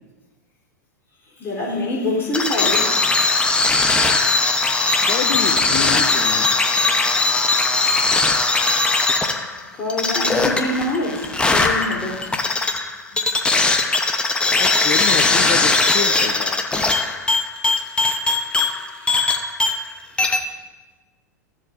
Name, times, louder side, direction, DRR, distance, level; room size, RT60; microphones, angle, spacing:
voice 1, 1.4-3.0 6.5-7.2 9.7-12.4 13.9-14.6 17.8-19.3, left 1 dB, 25° left, -3 dB, 3.5 m, -27 dB
sound 1, 2.3-19.9 20.2-20.4, left 3 dB, 10° left, 0.8 m, -19 dB
voice 2, 5.0-6.6 14.6-16.6, left 9 dB, 45° left, 5 dB, 0.8 m, -28 dB
15.0 x 7.6 x 2.6 m, 1.2 s
hypercardioid pair, 100°, 9 cm